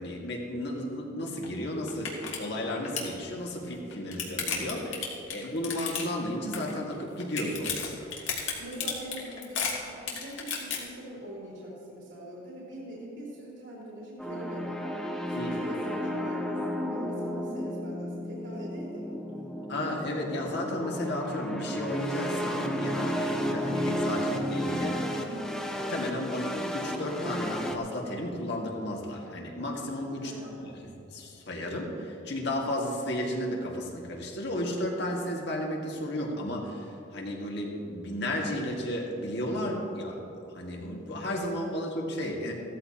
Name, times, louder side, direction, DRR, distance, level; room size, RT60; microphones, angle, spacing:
voice 1, 0.0-8.1 15.4-15.6 19.7-25.1 25.9-30.3 30.6-36.8 37.1-40.2 40.5-42.5, left 1 dB, 60° left, -1 dB, 1.9 m, -33 dB
sound 1, 1.4-1.5 1.9-2.4 2.6-3.1 3.7-6.3 6.5-6.9 7.2-10.8, left 6 dB, 80° left, 2.2 m, -32 dB
voice 2, 8.6-14.8 15.3-19.5 25.1-25.5 30.2-30.9 39.5-39.6, right 1 dB, 70° right, -6 dB, 3.1 m, -42 dB
sound 2, 14.2-27.8, equal, 5° left, 0.6 m, -33 dB
16.0 x 13.5 x 2.9 m, 2.8 s
head